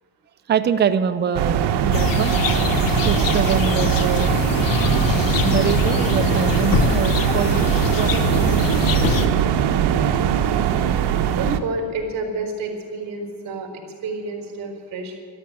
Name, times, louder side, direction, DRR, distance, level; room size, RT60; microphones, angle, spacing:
voice 1, 0.5-4.4 5.4-7.7 8.0-8.8, right 7 dB, 25° right, 9 dB, 0.6 m, -25 dB
Ambience Urban Night Plaça Primavera, 1.3-11.6, right 9 dB, 70° right, 1.2 m, -21 dB
sound 1, 1.9-9.3, left 5 dB, 50° left, 1.2 m, -23 dB
voice 2, 11.3-13.7 14.0-15.1, right 3 dB, 50° right, 2 dB, 4.5 m, -29 dB
13.0 x 12.5 x 8.7 m, 2.1 s
cardioid pair, 130°, 43 cm